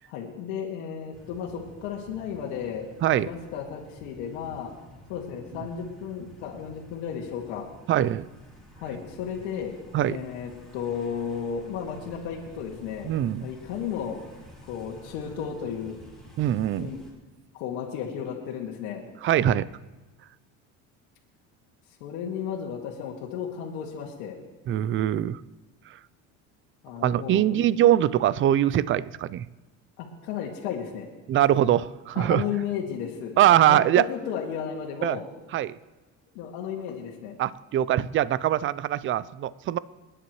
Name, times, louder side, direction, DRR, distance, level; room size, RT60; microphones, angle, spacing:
voice 1, 0.1-4.7 5.1-7.7 8.8-9.7 10.0-13.1 13.4-14.2 14.7-16.0 16.8-17.0 17.5-19.1 22.0-24.4 26.8-27.7 30.0-31.1 32.1-35.3 36.3-37.4, left 7 dB, 85° left, -3 dB, 2.0 m, -34 dB
sound 1, 1.1-17.1, equal, ahead, 4.9 m, -50 dB
voice 2, 7.9-8.3 9.9-10.2 13.1-13.5 16.4-16.9 19.2-19.7 24.7-25.4 27.0-29.4 31.3-32.4 33.4-34.0 35.0-35.2 35.5-35.8 37.4-39.8, right 12 dB, 40° right, 18 dB, 0.5 m, -22 dB
28.5 x 9.9 x 3.1 m, 1.2 s
cardioid pair, 120°, 31 cm